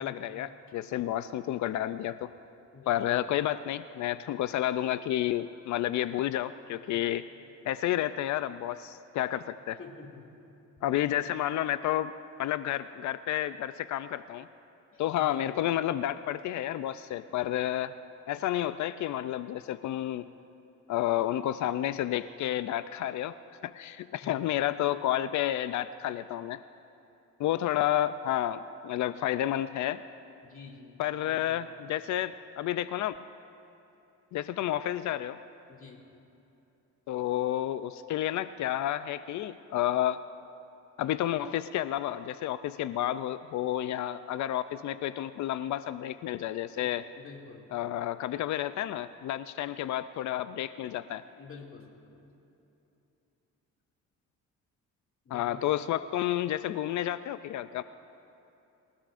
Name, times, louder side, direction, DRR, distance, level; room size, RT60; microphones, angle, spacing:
voice 1, 0.0-2.3 2.9-7.2 7.6-9.8 10.8-12.1 12.4-14.5 15.0-17.9 18.3-20.3 20.9-23.4 23.6-26.6 27.4-30.0 31.0-33.2 34.3-35.4 37.1-40.2 41.0-47.0 47.7-51.2 55.3-57.8, left 12 dB, 70° left, 13 dB, 0.4 m, -30 dB
voice 2, 2.7-3.3 6.9-7.0 9.8-10.2 10.9-11.1 14.9-15.6 24.2-24.4 30.4-31.0 31.3-31.6 35.7-36.0 46.8-46.9 47.2-47.6 51.4-52.3 55.2-55.6, left 5 dB, 45° left, -1 dB, 2.5 m, -48 dB
24.5 x 16.0 x 2.6 m, 2.9 s
cardioid pair, 90°, 30 cm